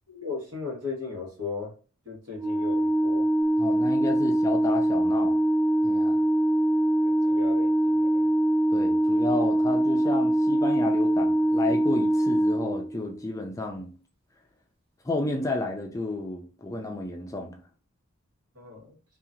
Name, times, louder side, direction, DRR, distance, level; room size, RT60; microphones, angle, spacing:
voice 1, 0.1-1.7 2.0-3.2 7.0-8.2 18.5-19.0, left 4 dB, 75° right, 1.4 m, -37 dB
Organ, 2.3-13.2, right 1 dB, 30° right, 0.9 m, -23 dB
voice 2, 3.6-5.4 5.8-6.2 8.7-13.9 15.0-17.6, left 2 dB, 15° left, 0.3 m, -32 dB
2.8 x 2.4 x 2.5 m
head